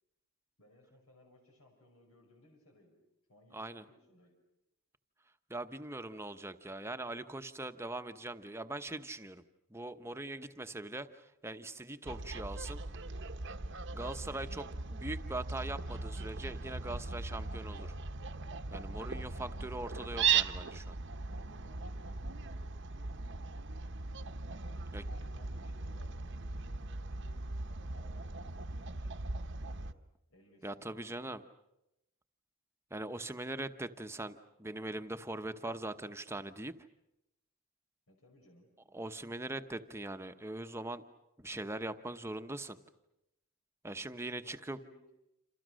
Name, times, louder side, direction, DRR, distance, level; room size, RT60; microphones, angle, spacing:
voice 1, 0.6-3.0 3.3-4.3 21.5-23.7 24.5-29.1 29.5-29.9 30.3-31.3 38.1-38.7 43.9-45.0, left 1 dB, 90° left, 3 dB, 5.8 m, -63 dB
voice 2, 3.5-3.8 5.5-9.4 9.7-12.8 13.9-17.9 18.7-21.0 24.9-25.0 30.6-31.4 32.9-36.7 38.9-41.0 41.4-42.8 43.8-44.8, right 2 dB, 10° right, 9 dB, 0.9 m, -41 dB
Fowl, 12.1-29.9, right 5 dB, 55° right, 1.0 m, -38 dB
28.0 x 27.5 x 6.4 m, 0.88 s
head